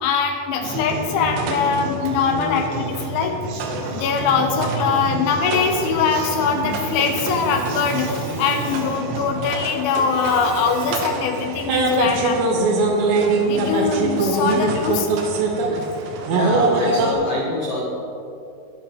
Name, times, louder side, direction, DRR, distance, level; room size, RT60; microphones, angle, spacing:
voice 1, 0.0-3.6 3.9-12.4 13.5-15.1, left 5 dB, 85° left, 4 dB, 3.2 m, -22 dB
sound 1, 0.6-17.1, right 3 dB, 75° right, 3.3 m, -24 dB
voice 2, 16.3-17.8, left 1 dB, 60° left, -5 dB, 1.7 m, -25 dB
21.5 x 11.0 x 3.1 m, 2.6 s
omnidirectional pair, 5.4 m